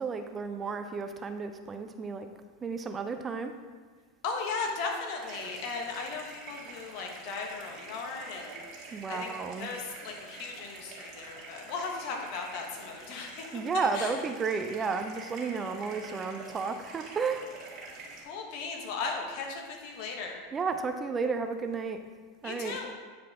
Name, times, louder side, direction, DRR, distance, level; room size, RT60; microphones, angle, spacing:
voice 1, 0.0-2.3 2.6-3.5 8.9-9.7 13.5-17.5 20.5-22.0 22.4-22.8, right 5 dB, 25° right, 7 dB, 0.5 m, -32 dB
voice 2, 4.2-8.6 9.1-9.3 9.6-13.4 13.9-14.2 18.2-20.4 22.4-22.9, left 4 dB, 55° left, 1 dB, 1.3 m, -36 dB
sound 1, 5.2-18.2, right 3 dB, 45° right, 2.0 m, -46 dB
9.2 x 4.7 x 3.5 m, 1.5 s
hypercardioid pair, 90°, 0 cm